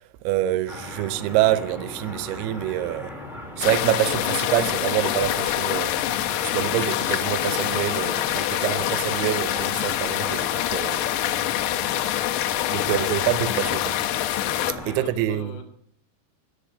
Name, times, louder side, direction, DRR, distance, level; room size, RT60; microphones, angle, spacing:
voice 1, 0.2-3.1 3.6-11.0 12.7-14.0 15.0-15.5, right 13 dB, 80° right, 2.3 m, -26 dB
sound 1, 0.7-15.1, left 1 dB, ahead, 1.1 m, -38 dB
sound 2, 3.6-14.7, left 14 dB, 80° left, 2.3 m, -25 dB
voice 2, 12.4-13.1 14.4-15.7, left 6 dB, 60° left, 2.4 m, -41 dB
10.0 x 8.8 x 10.0 m
omnidirectional pair, 5.5 m